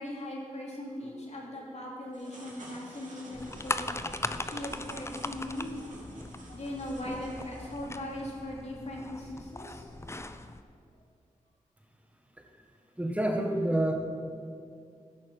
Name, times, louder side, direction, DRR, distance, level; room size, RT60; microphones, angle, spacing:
voice 1, 0.0-6.0 6.5-10.1 10.9-11.0, left 1 dB, 50° left, -2 dB, 2.9 m, -39 dB
sound 1, 2.1-7.7, right 1 dB, 65° right, 2.6 m, -51 dB
sound 2, 3.3-10.6, left 2 dB, 20° left, 0.6 m, -39 dB
voice 2, 13.0-13.9, right 1 dB, 10° right, 3 dB, 1.6 m, -28 dB
14.0 x 6.3 x 5.8 m, 2.3 s
cardioid pair, 45°, 14 cm